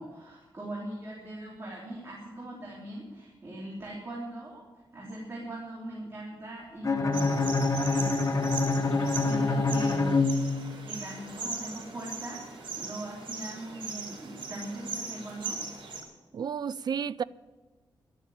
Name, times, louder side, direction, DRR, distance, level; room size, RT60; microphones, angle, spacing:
voice 1, 0.0-4.6 4.9-7.3 7.9-8.0 9.1-10.2 10.8-15.6, right 1 dB, 30° right, 3.2 m, -40 dB
Bowed string instrument, 6.8-11.0, left 3 dB, 35° left, 1.1 m, -26 dB
sound 1, 7.1-16.0, right 4 dB, 90° right, 4.3 m, -39 dB
voice 2, 16.3-17.2, right 7 dB, 55° right, 0.4 m, -31 dB
12.0 x 11.5 x 8.5 m
wide cardioid pair, 150°, 9 cm